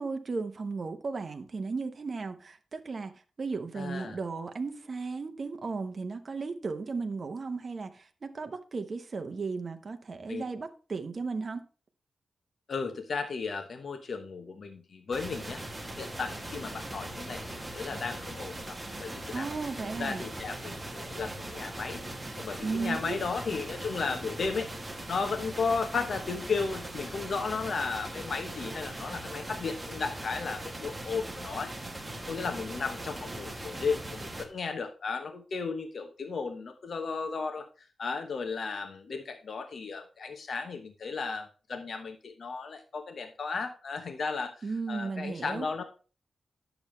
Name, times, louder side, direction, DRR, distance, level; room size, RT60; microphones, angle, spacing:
voice 1, 0.0-11.6 19.3-20.2 22.6-23.2 44.6-45.7, right 4 dB, 40° right, 0.9 m, -35 dB
voice 2, 3.8-4.2 10.3-10.4 12.7-15.6 16.0-19.5 20.0-22.0 22.4-24.7 25.1-31.7 32.3-37.7 38.0-45.8, left 4 dB, 60° left, 1.0 m, -34 dB
sound 1, 15.1-34.5, right 1 dB, 15° right, 1.3 m, -40 dB
10.5 x 7.0 x 3.2 m
wide cardioid pair, 140°, 0 cm